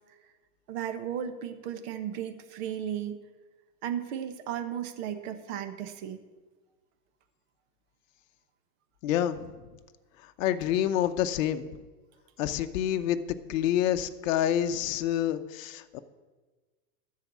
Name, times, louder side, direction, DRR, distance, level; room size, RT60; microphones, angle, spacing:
voice 1, 0.7-3.2 3.8-6.2, right 9 dB, 45° right, 9 dB, 1.2 m, -35 dB
voice 2, 9.0-9.4 10.4-11.7 12.4-13.2 13.5-16.0, left 11 dB, 55° left, 8 dB, 0.8 m, -27 dB
13.0 x 4.7 x 8.3 m, 1.3 s
hypercardioid pair, 135°, 46 cm